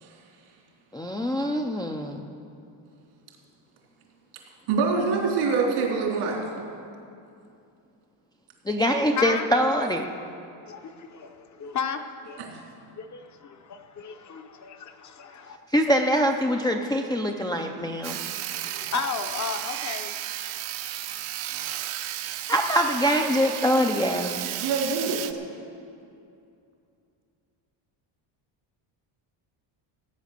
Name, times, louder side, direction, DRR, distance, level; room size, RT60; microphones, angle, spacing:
voice 1, 0.9-2.3 8.7-10.1 15.7-18.2 22.5-24.4, equal, 10° left, 2 dB, 0.3 m, -24 dB
voice 2, 4.7-6.4 12.4-12.5 24.6-25.2, right 4 dB, 85° right, -1 dB, 3.5 m, -24 dB
voice 3, 10.7-12.5 12.8-15.6 18.5-20.2, left 6 dB, 35° left, 6 dB, 0.7 m, -34 dB
Sawing, 18.0-25.3, right 13 dB, 70° right, 0.8 m, -33 dB
16.0 x 9.2 x 6.6 m, 2.5 s
cardioid pair, 165°, 50 cm